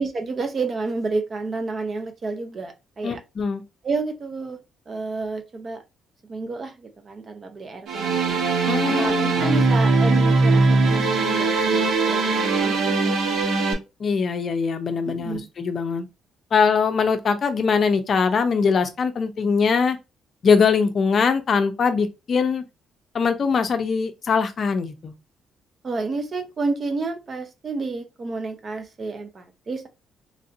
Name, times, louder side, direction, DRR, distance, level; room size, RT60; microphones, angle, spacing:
voice 1, 0.0-3.2 3.8-5.8 6.2-8.4 8.8-13.5 15.0-15.5 25.8-29.9, right 3 dB, 35° right, 0.7 m, -30 dB
voice 2, 3.0-3.6 8.7-9.6 14.0-16.1 16.5-20.0 20.4-22.6 23.1-25.1, left 5 dB, 45° left, 0.5 m, -22 dB
sound 1, 7.9-13.7, right 3 dB, 75° right, 1.0 m, -20 dB
3.2 x 2.5 x 2.6 m
cardioid pair, 120°, 0 cm